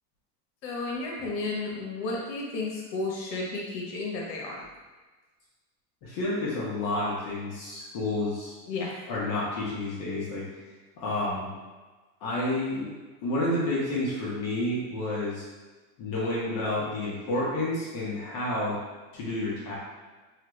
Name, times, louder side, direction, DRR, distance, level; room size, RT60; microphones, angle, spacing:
voice 1, 0.6-4.6 8.7-8.9, left 3 dB, 90° left, -2 dB, 1.1 m, -32 dB
voice 2, 6.0-8.5 9.1-10.4 11.0-11.5 12.2-15.4 16.0-18.8 19.1-19.7, left 1 dB, 50° left, -7 dB, 1.1 m, -30 dB
3.1 x 2.3 x 3.1 m, 1.3 s
supercardioid pair, 130°, 49 cm